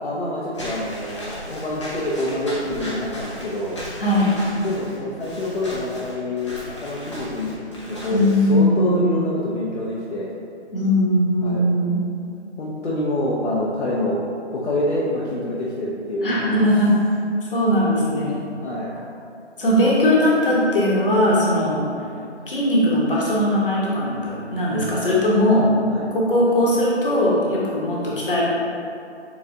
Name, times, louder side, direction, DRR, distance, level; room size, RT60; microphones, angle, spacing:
voice 1, 0.0-3.8 4.5-7.6 7.9-10.3 11.4-11.7 12.6-14.2 14.5-16.7 18.6-19.0 21.6-21.7 25.9-26.1, left 1 dB, 70° left, -6 dB, 0.8 m, -26 dB
Walk footsteps / Squeak, 0.5-8.5, equal, 25° left, 0.6 m, -36 dB
voice 2, 4.0-4.3 8.1-9.2 10.7-12.0 16.2-16.9 17.5-18.4 19.6-21.8 22.5-25.7 26.1-28.5, left 1 dB, 50° left, -6 dB, 1.1 m, -19 dB
6.9 x 2.4 x 2.5 m, 2.5 s
figure-of-eight pair, 160°, 35 cm